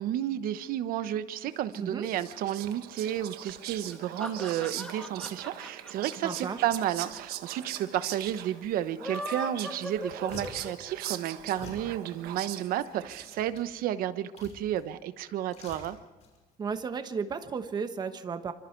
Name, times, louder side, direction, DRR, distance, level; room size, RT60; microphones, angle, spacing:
voice 1, 0.0-16.0, right 11 dB, 70° right, 12 dB, 1.0 m, -32 dB
Whispering, 1.7-13.7, right 12 dB, 90° right, 1.3 m, -41 dB
voice 2, 1.8-2.1 6.2-6.6 16.6-18.5, right 5 dB, 25° right, 9 dB, 1.2 m, -34 dB
sound 1, 3.8-7.2 7.5-7.6 7.8-7.9 8.8-11.0, left 1 dB, 5° left, 1.8 m, -39 dB
sound 2, 9.5-9.6 9.8-10.8 11.6-11.9 12.6-13.8 14.4-14.9 15.2-16.4 16.7-16.8, left 4 dB, 45° left, 5.8 m, -47 dB
27.5 x 25.5 x 4.6 m, 1.2 s
cardioid pair, 175°, 15 cm